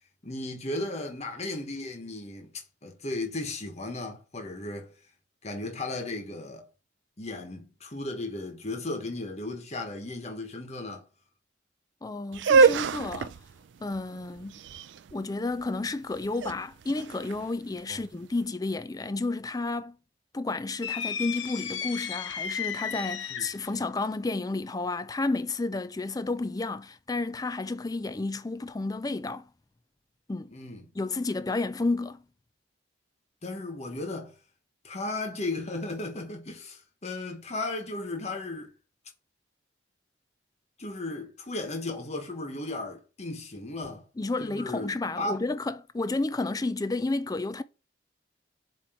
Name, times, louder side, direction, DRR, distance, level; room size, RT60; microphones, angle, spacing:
voice 1, 0.2-2.5 2.8-4.9 5.4-6.6 7.2-11.0 17.9-18.0 23.3-23.5 30.5-30.9 33.4-34.3 34.8-38.7 40.8-44.0 44.4-45.4, left 2 dB, 35° left, 1.4 m, -35 dB
voice 2, 12.0-13.3 13.8-14.6 15.1-20.0 20.3-29.4 30.3-30.5 30.9-32.2 44.2-47.6, left 3 dB, 20° left, 0.4 m, -31 dB
sound 1, 12.3-18.2, right 5 dB, 75° right, 0.4 m, -26 dB
sound 2, 20.8-23.7, left 8 dB, 90° left, 0.9 m, -34 dB
7.6 x 3.1 x 4.5 m
head